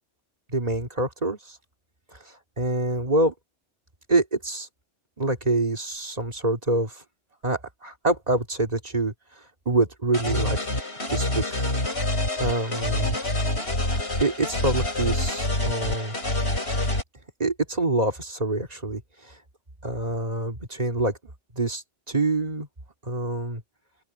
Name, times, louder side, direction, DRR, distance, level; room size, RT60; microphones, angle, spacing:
voice 1, 0.5-1.6 2.6-3.3 4.1-4.7 5.2-7.0 7.4-9.1 9.7-10.6 11.1-11.6 11.9-12.1 12.4-13.2 14.2-16.2 17.4-19.0 19.3-19.4 19.8-21.2 21.5-22.7 23.0-23.6, right 2 dB, 35° right, 2.5 m, -26 dB
sound 1, 10.1-17.0, left 1 dB, 60° left, 6.2 m, -26 dB
open air
omnidirectional pair, 1.2 m